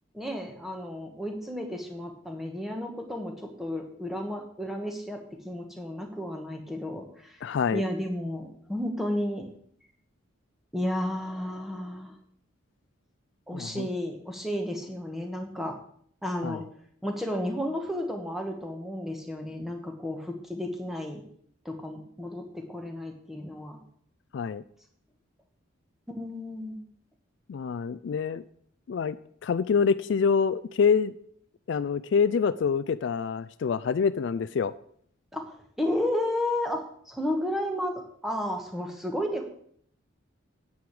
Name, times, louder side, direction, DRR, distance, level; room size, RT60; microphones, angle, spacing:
voice 1, 0.1-7.4 7.7-9.5 10.7-12.2 13.5-15.8 16.2-16.6 17.0-21.2 21.6-23.8 26.1-26.8 35.3-39.5, left 1 dB, ahead, 3 dB, 1.3 m, -32 dB
voice 2, 7.4-7.8 13.5-13.9 16.4-16.6 24.3-24.6 27.5-28.4 28.9-31.1 31.7-34.7, left 6 dB, 60° left, 15 dB, 0.3 m, -26 dB
9.5 x 8.6 x 4.8 m, 0.62 s
head